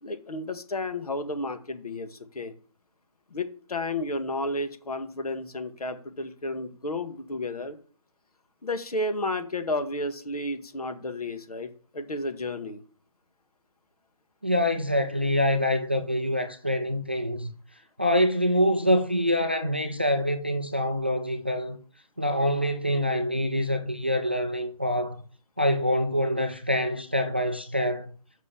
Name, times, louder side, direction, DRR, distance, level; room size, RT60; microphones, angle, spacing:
voice 1, 0.0-2.5 3.3-7.8 8.6-12.8, left 2 dB, 80° left, 1.8 m, -32 dB
voice 2, 14.4-17.5 18.0-21.8 22.2-25.2 25.6-28.1, left 1 dB, 20° right, 0.3 m, -25 dB
6.0 x 5.8 x 7.2 m
hypercardioid pair, 170°, 19 cm